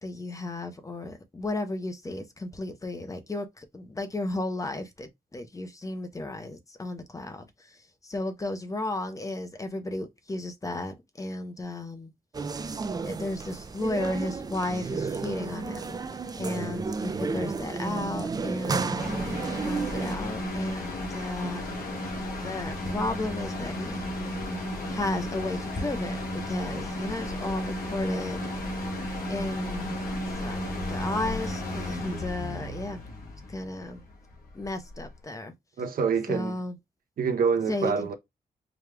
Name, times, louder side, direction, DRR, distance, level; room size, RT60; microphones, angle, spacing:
voice 1, 0.0-12.1 13.1-16.0 16.3-21.7 22.4-24.1 24.9-28.4 29.3-30.0 30.4-33.0 33.5-34.0 34.5-35.5 36.3-36.8 37.7-38.1, left 2 dB, 20° left, 0.7 m, -34 dB
sound 1, 12.3-20.2, right 4 dB, 25° right, 0.4 m, -32 dB
sound 2, 19.0-35.1, left 1 dB, 70° left, 1.6 m, -33 dB
voice 2, 35.8-36.6 37.2-38.2, right 6 dB, 65° right, 0.7 m, -26 dB
4.9 x 2.3 x 3.2 m
wide cardioid pair, 125°, 16 cm